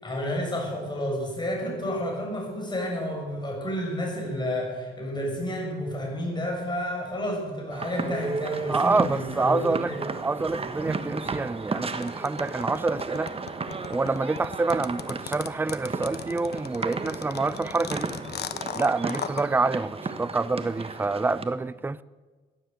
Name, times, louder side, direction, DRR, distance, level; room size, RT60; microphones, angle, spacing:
voice 1, 0.0-10.1, equal, 20° left, 6.8 m, -30 dB
sound 1, 7.7-21.4, right 4 dB, 30° right, 1.4 m, -34 dB
voice 2, 8.7-13.3 13.9-18.1 18.7-22.0, right 3 dB, 10° right, 0.4 m, -27 dB
sound 2, 12.0-19.4, left 8 dB, 55° left, 1.0 m, -36 dB
16.0 x 10.5 x 8.1 m
cardioid pair, 90°, 20 cm